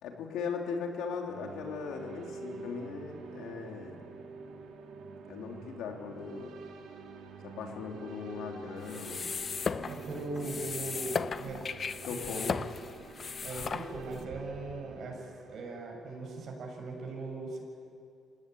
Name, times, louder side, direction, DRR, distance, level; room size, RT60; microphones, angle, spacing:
voice 1, 0.0-4.0 5.3-6.5 7.4-9.3 12.0-12.6, left 5 dB, 85° left, 2 dB, 3.5 m, -38 dB
sound 1, 1.3-16.0, right 4 dB, 85° right, 2.7 m, -47 dB
sound 2, 8.8-14.2, left 5 dB, 45° left, 0.8 m, -36 dB
voice 2, 9.8-11.6 12.1-12.5 13.4-17.6, right 3 dB, 65° right, 1 dB, 7.3 m, -39 dB
26.5 x 18.0 x 9.6 m, 2.4 s
cardioid pair, 90°, 0 cm